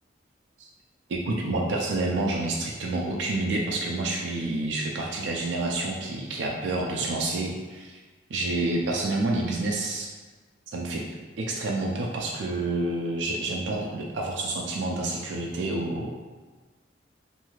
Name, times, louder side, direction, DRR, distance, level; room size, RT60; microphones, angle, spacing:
voice 1, 1.1-8.0 8.3-10.1 10.7-11.0 11.4-16.2, right 2 dB, 90° right, -1 dB, 0.4 m, -28 dB
3.1 x 2.6 x 2.3 m, 1.3 s
head